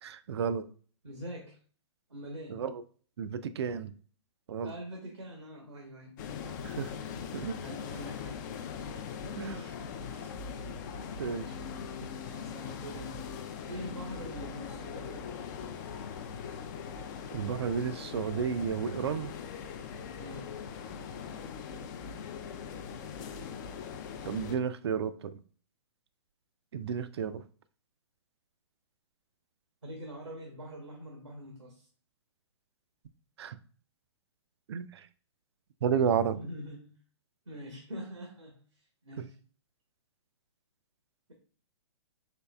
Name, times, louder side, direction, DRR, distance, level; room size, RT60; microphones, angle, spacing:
voice 1, 0.0-0.7 2.5-2.8 3.2-3.9 4.5-4.7 6.6-6.9 7.3-7.6 9.4-9.6 11.2-11.5 17.3-19.3 24.2-25.4 26.7-27.4 33.4-33.6 34.7-35.1 35.8-36.4, right 7 dB, 60° right, 0.4 m, -32 dB
voice 2, 1.0-1.6 2.1-2.6 4.6-6.1 6.4-8.4 9.2-9.5 12.3-13.3 13.7-15.5 20.2-20.5 29.8-31.9 36.3-36.9 37.5-39.3, equal, 90° right, 1.0 m, -44 dB
sound 1, 6.2-24.6, left 6 dB, 40° left, 0.4 m, -41 dB
4.3 x 3.1 x 2.3 m
figure-of-eight pair, 125°, 15 cm